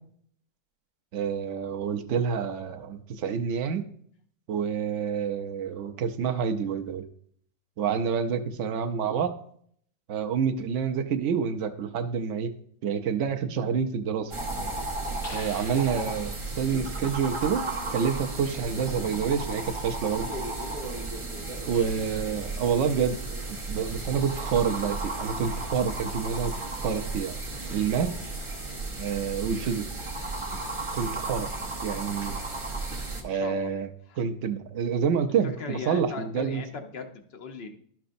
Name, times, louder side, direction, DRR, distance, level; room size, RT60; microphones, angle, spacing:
voice 1, 1.1-3.8 4.5-7.0 7.8-9.3 10.1-12.5 12.8-14.3 15.3-17.6 17.9-20.3 21.7-23.2 23.5-26.5 26.8-27.4 27.7-28.1 29.0-29.8 30.9-31.5 31.8-32.4 33.2-33.9 34.2-36.6, right 7 dB, 75° right, 6 dB, 0.6 m, -28 dB
sound 1, 14.3-33.2, right 2 dB, 25° right, 0.6 m, -34 dB
sound 2, 15.2-16.8, left 2 dB, 85° left, 2.5 m, -45 dB
voice 2, 21.7-22.1 33.2-33.7 34.1-34.2 35.4-37.8, left 4 dB, 65° left, 4 dB, 0.6 m, -39 dB
11.5 x 5.9 x 2.6 m, 0.62 s
omnidirectional pair, 2.0 m